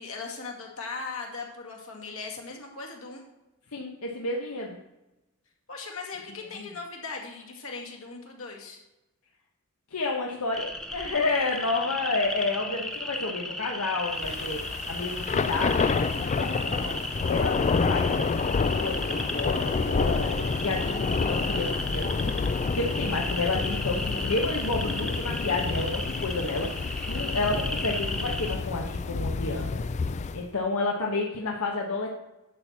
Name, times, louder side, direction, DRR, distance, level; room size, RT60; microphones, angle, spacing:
voice 1, 0.0-3.2 5.7-8.8, left 4 dB, 65° left, 0 dB, 2.0 m, -38 dB
voice 2, 3.7-4.8 9.9-17.0 17.3-29.8 30.3-32.1, left 3 dB, 80° left, -1 dB, 1.1 m, -30 dB
sound 1, 10.5-28.6, left 1 dB, 5° left, 0.7 m, -35 dB
Thunder / Rain, 14.2-30.5, left 4 dB, 30° left, 0.3 m, -29 dB
10.5 x 4.5 x 7.2 m, 0.97 s
head